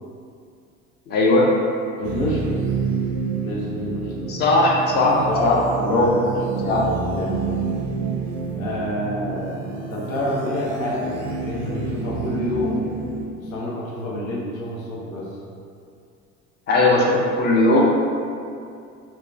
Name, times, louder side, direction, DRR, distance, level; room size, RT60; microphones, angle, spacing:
voice 1, 1.1-1.5 4.3-5.2 5.4-5.6 5.9-6.1 6.7-6.8 16.7-17.8, left 2 dB, 25° left, -2 dB, 0.4 m, -18 dB
voice 2, 2.0-2.5 3.4-4.4 5.2-6.3 6.6-6.8 7.1-7.4 8.6-9.6 9.9-12.8 13.4-15.4, left 1 dB, 80° left, -4 dB, 0.6 m, -28 dB
sound 1, 2.0-13.3, right 4 dB, 50° right, 0.4 m, -28 dB
2.9 x 2.0 x 2.4 m, 2.4 s
figure-of-eight pair, 65°, 41 cm